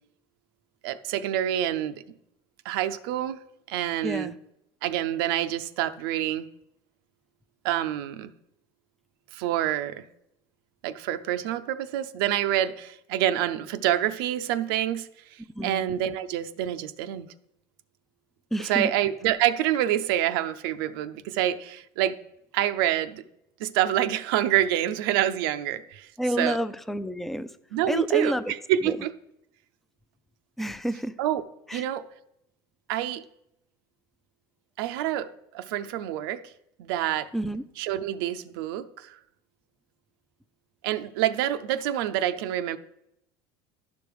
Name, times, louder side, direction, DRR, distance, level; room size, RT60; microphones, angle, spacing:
voice 1, 0.8-1.9 2.7-3.4 3.7-4.3 4.8-6.5 7.6-8.3 9.3-10.0 10.8-15.1 15.6-17.3 18.6-22.2 22.5-23.2 23.6-26.1 26.4-26.6 27.7-28.3 28.7-29.1 31.2-31.4 31.7-32.0 32.9-33.2 34.8-35.3 35.5-36.4 36.8-37.3 37.8-39.2 40.8-42.8, right 12 dB, 80° right, 0.5 m, -27 dB
voice 2, 4.0-4.3 15.6-15.9 18.5-18.9 26.2-27.5 27.9-28.5 28.8-29.0 30.6-31.1 31.7-31.9 37.3-37.6, equal, ahead, 0.4 m, -29 dB
12.0 x 5.2 x 4.7 m
supercardioid pair, 120°, 12 cm